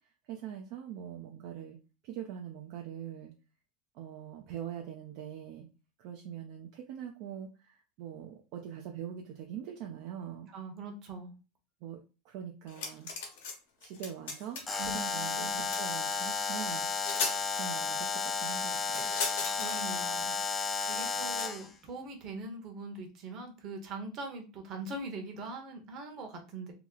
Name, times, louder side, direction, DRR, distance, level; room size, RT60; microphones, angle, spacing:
voice 1, 0.3-1.8 2.0-3.3 3.9-5.7 6.0-10.5 11.8-12.0 12.2-13.1 13.8-15.5 15.8-16.9 17.5-19.2, right 9 dB, 55° right, 2 dB, 0.4 m, -43 dB
voice 2, 10.5-11.3 14.8-15.7 19.5-26.7, right 2 dB, 40° right, 3 dB, 0.9 m, -42 dB
sound 1, 12.7-13.5 13.8-14.7 15.7-15.8 16.7-16.8 17.0-17.4 18.9-19.8 21.4-21.5, left 4 dB, 85° left, 1.0 m, -36 dB
Alarm, 14.7-21.7, left 5 dB, 15° left, 0.4 m, -33 dB
2.9 x 2.0 x 3.6 m, 0.31 s
supercardioid pair, 155°, 0 cm